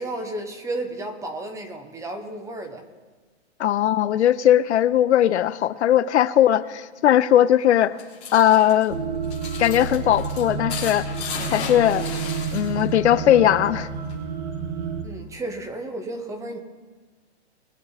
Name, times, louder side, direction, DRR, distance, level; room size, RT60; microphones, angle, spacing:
voice 1, 0.0-2.9 15.0-16.6, right 2 dB, 10° right, 5 dB, 1.0 m, -33 dB
voice 2, 3.6-8.0 8.3-9.0 9.6-11.1 11.5-12.1 12.5-13.9, left 11 dB, 90° left, 16 dB, 0.7 m, -19 dB
sound 1, 7.7-13.0 13.3-14.2, left 6 dB, 20° left, 3.0 m, -36 dB
sound 2, 8.9-15.0, right 5 dB, 40° right, 1.3 m, -30 dB
21.5 x 7.4 x 4.1 m, 1.4 s
hypercardioid pair, 155°, 33 cm